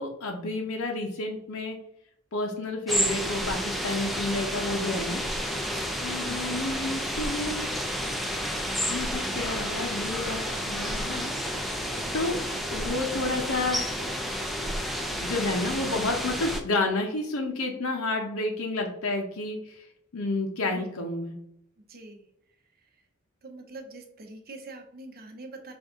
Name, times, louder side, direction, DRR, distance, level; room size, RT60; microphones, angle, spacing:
voice 1, 0.0-1.8 2.3-5.2 6.0-7.7 8.9-11.3 12.1-12.4 12.7-13.9 15.2-19.9 20.1-21.4, left 2 dB, 75° left, 2 dB, 0.8 m, -30 dB
sound 1, 2.9-16.6, equal, ahead, 0.4 m, -31 dB
voice 2, 21.9-22.3 22.8-22.9 23.4-25.7, right 2 dB, 45° right, 4 dB, 0.8 m, -44 dB
5.3 x 2.5 x 3.6 m, 0.75 s
head